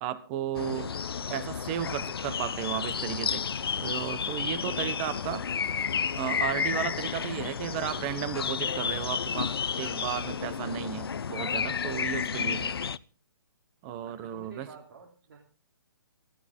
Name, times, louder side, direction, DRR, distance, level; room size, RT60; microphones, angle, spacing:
voice 1, 0.0-0.9 1.3-3.4 3.8-5.5 6.2-12.7 13.8-14.7, right 11 dB, 25° right, 15 dB, 1.2 m, -34 dB
sound 1, 0.5-13.0, left 6 dB, 80° left, 0.7 m, -31 dB
voice 2, 9.8-10.2 12.3-12.5 14.0-15.4, right 5 dB, 60° right, 2 dB, 3.3 m, -51 dB
18.5 x 14.0 x 3.8 m, 0.35 s
hypercardioid pair, 155°, 12 cm